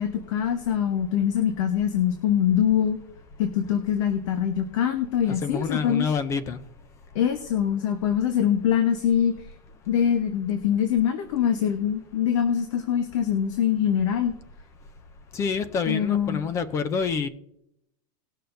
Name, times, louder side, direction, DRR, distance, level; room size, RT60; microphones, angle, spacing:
voice 1, 0.0-3.0 3.4-6.1 7.1-9.3 9.9-14.3 15.9-16.4, left 9 dB, 55° left, 6 dB, 1.1 m, -24 dB
voice 2, 5.4-6.6 15.3-17.3, left 5 dB, 15° left, 13 dB, 0.4 m, -27 dB
19.5 x 6.6 x 2.6 m, 0.81 s
supercardioid pair, 170°, 19 cm